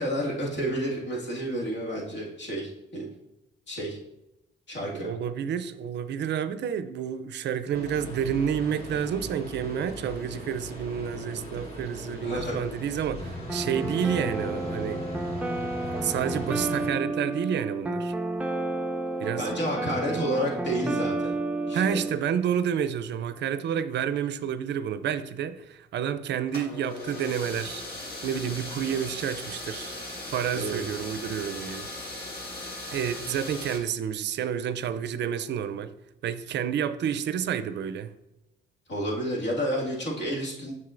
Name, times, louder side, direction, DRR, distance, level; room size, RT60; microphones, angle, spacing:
voice 1, 0.0-3.1 3.7-4.0 4.7-5.1 12.2-12.6 19.4-21.3 21.7-22.0 30.5-30.8 38.9-40.7, equal, 65° left, 2.0 m, -30 dB
voice 2, 4.8-15.1 15.9-18.1 19.2-19.5 20.1-20.4 21.7-27.8 28.2-30.0 30.3-32.2 32.9-35.9 36.2-38.1, right 8 dB, 65° right, 0.4 m, -30 dB
sound 1, 7.7-16.9, equal, 30° left, 1.7 m, -38 dB
sound 2, 13.5-22.2, right 2 dB, 5° right, 0.5 m, -31 dB
sound 3, 26.5-33.8, left 1 dB, 50° left, 1.9 m, -38 dB
7.4 x 6.0 x 2.5 m
cardioid pair, 90°, 20 cm